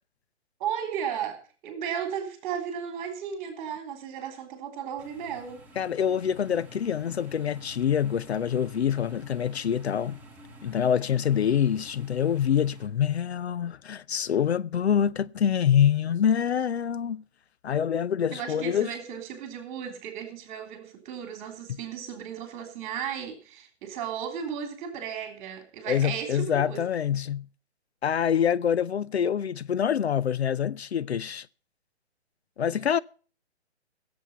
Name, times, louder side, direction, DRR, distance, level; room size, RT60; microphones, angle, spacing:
voice 1, 0.6-5.6 16.5-16.6 18.3-26.8, right 8 dB, 30° right, 3.4 m, -35 dB
sound 1, 5.0-12.9, right 1 dB, 5° right, 1.7 m, -50 dB
voice 2, 5.8-10.2 10.6-17.2 17.6-18.9 25.9-27.5 28.0-31.5 32.6-33.0, left 8 dB, 70° left, 0.6 m, -25 dB
16.5 x 7.8 x 5.5 m
figure-of-eight pair, 135°, 34 cm